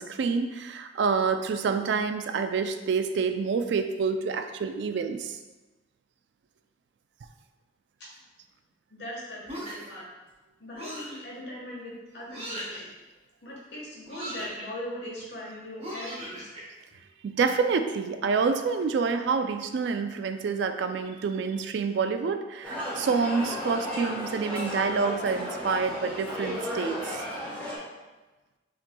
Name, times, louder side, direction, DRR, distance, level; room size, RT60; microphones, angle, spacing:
voice 1, 0.0-5.3 17.2-27.2, right 5 dB, 65° right, 7 dB, 0.3 m, -27 dB
voice 2, 8.9-10.0 10.6-12.9 13.4-16.5, left 1 dB, 70° left, -5 dB, 1.3 m, -40 dB
sound 1, 9.5-10.0 10.8-11.2 12.3-12.8 14.1-14.6 15.8-16.6, equal, 35° right, 1.2 m, -38 dB
sound 2, 22.6-27.8, left 1 dB, 10° left, 1.0 m, -34 dB
5.8 x 3.0 x 2.2 m, 1.2 s
head